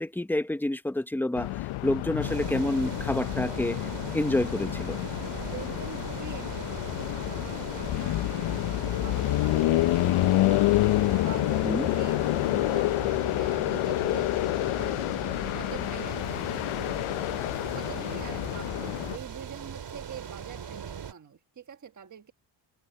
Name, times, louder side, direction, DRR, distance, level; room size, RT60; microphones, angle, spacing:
voice 1, 0.0-1.5 1.8-3.8 4.1-5.0 11.6-11.9, left 1 dB, 5° left, 0.8 m, -28 dB
sound 1, 1.4-19.2, left 17 dB, 80° left, 0.6 m, -28 dB
sound 2, 2.2-21.1, right 7 dB, 55° right, 4.2 m, -40 dB
voice 2, 5.4-10.7 11.1-15.0 15.4-16.5 16.8-17.0 17.6-22.3, right 7 dB, 35° right, 1.6 m, -45 dB
cardioid pair, 115°, 49 cm